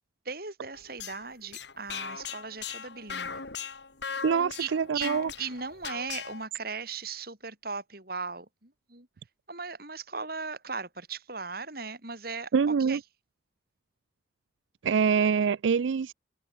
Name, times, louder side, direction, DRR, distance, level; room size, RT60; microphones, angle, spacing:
voice 1, 0.2-3.4 4.6-9.1 9.5-13.0, right 5 dB, 55° right, 5.9 m, -38 dB
sound 1, 0.7-6.5, left 6 dB, 70° left, 2.4 m, -39 dB
voice 2, 4.2-5.3 12.5-13.0 14.8-16.1, right 6 dB, 90° right, 0.4 m, -25 dB
head